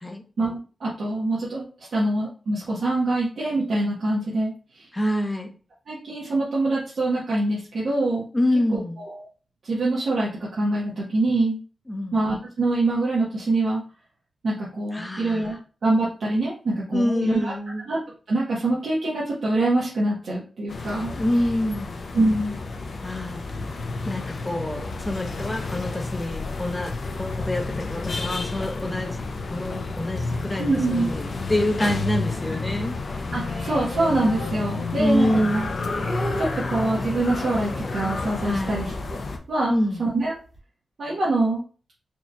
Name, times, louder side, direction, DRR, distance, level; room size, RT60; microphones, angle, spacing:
voice 1, 0.4-1.6 1.9-4.9 5.9-8.2 8.7-9.2 9.6-11.6 12.1-13.8 14.4-17.5 17.9-18.0 18.3-21.1 22.1-22.6 30.6-31.1 33.3-35.3 35.5-35.7 36.4-38.9 39.5-39.7 40.0-40.3 41.0-41.6, right 2 dB, 70° right, -7 dB, 1.1 m, -24 dB
voice 2, 4.9-5.5 8.3-9.0 11.9-12.2 14.9-15.6 16.9-17.8 21.1-22.0 23.0-23.4 24.1-29.2 29.5-33.0 35.0-35.7 38.4-38.9 39.7-40.0, left 1 dB, 15° left, 4 dB, 0.7 m, -26 dB
sound 1, 20.7-39.4, left 3 dB, 55° left, 0.5 m, -31 dB
sound 2, 33.0-35.2 35.5-39.4 39.7-39.8 40.1-40.6, right 1 dB, 30° right, 1.4 m, -37 dB
4.3 x 2.9 x 2.3 m, 0.38 s
wide cardioid pair, 145°, 0 cm